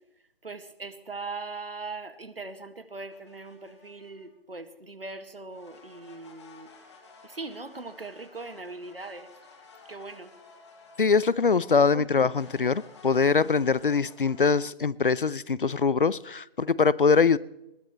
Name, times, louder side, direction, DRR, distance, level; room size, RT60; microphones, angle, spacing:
voice 1, 0.4-6.7 7.2-9.3 9.9-10.3 11.9-12.0, right 3 dB, 75° right, 1.9 m, -40 dB
sound 1, 3.1-4.3 5.5-11.6 12.3-14.5, left 4 dB, 30° left, 2.7 m, -53 dB
voice 2, 11.0-17.4, left 5 dB, 60° left, 0.8 m, -23 dB
21.5 x 20.0 x 3.1 m
figure-of-eight pair, 155°, 29 cm